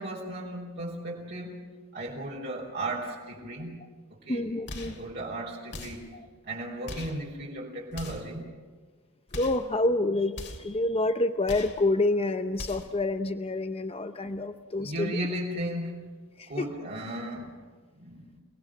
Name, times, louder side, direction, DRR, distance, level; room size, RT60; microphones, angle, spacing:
voice 1, 0.0-1.7 1.9-3.8 4.1-4.5 4.8-6.1 6.4-8.5 14.8-16.1 16.5-17.5 17.9-18.4, right 1 dB, 50° right, 4.2 m, -35 dB
voice 2, 4.3-5.0 6.1-6.2 9.3-15.2 16.4-16.7, left 2 dB, 25° left, 0.7 m, -28 dB
sound 1, 4.7-5.0 5.7-6.1 6.8-7.2 7.9-8.3 9.3-9.7 10.3-10.7 11.4-11.8 12.5-13.0, left 2 dB, 50° left, 2.9 m, -40 dB
29.5 x 19.5 x 6.3 m
head